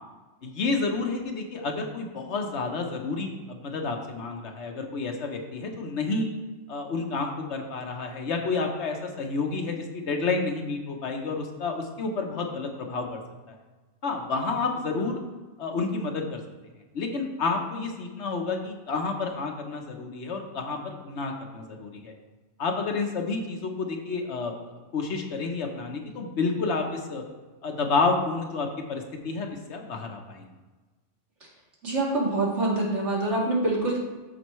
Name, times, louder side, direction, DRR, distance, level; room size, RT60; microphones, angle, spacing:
voice 1, 0.4-6.3 6.7-13.1 14.0-15.2 15.6-16.4 16.9-22.1 22.6-27.2 27.6-30.4, left 4 dB, 70° left, 3 dB, 1.3 m, -30 dB
voice 2, 31.8-34.0, right 2 dB, 80° right, -4 dB, 2.4 m, -25 dB
13.0 x 4.5 x 3.1 m, 1.2 s
omnidirectional pair, 1.2 m